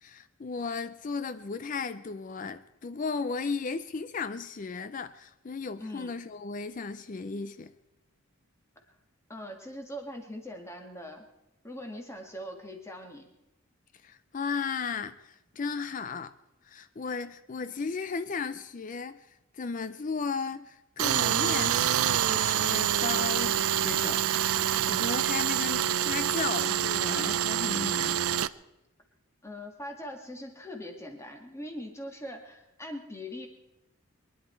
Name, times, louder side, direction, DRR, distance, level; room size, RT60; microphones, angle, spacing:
voice 1, 0.0-7.7 14.0-16.3 16.6-24.3 24.6-28.2, left 4 dB, 35° left, 0.4 m, -35 dB
voice 2, 5.8-6.1 9.3-11.3 11.6-13.3 23.0-23.3 29.4-33.5, equal, 15° left, 1.9 m, -41 dB
Tools, 21.0-28.5, right 10 dB, 85° right, 0.5 m, -26 dB
23.5 x 11.0 x 4.5 m
head